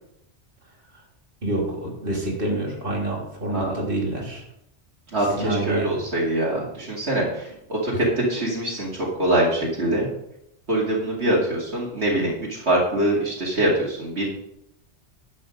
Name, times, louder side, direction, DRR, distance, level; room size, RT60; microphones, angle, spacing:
voice 1, 1.4-4.4 5.4-6.0, right 1 dB, 50° right, -1 dB, 3.2 m, -27 dB
voice 2, 5.1-10.1 10.7-14.3, right 1 dB, 65° right, -6 dB, 2.8 m, -24 dB
12.0 x 8.3 x 5.2 m, 0.81 s
omnidirectional pair, 1.2 m